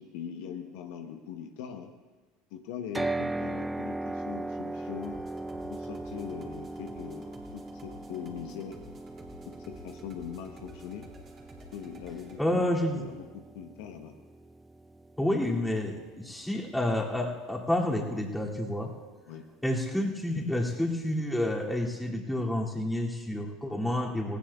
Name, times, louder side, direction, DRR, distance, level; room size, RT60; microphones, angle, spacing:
voice 1, 0.0-1.9 2.5-5.2 5.7-8.8 9.5-11.1 11.7-12.6 12.9-14.2 19.3-19.5, left 8 dB, 65° left, 5 dB, 1.0 m, -41 dB
sound 1, 2.9-17.1, right 2 dB, 10° right, 0.4 m, -39 dB
sound 2, 5.0-12.4, right 1 dB, 40° right, 2.7 m, -52 dB
voice 2, 12.4-13.1 15.2-18.9 19.6-24.4, left 1 dB, 5° left, -3 dB, 2.6 m, -29 dB
18.5 x 18.0 x 2.4 m, 1.3 s
hypercardioid pair, 75°, 0 cm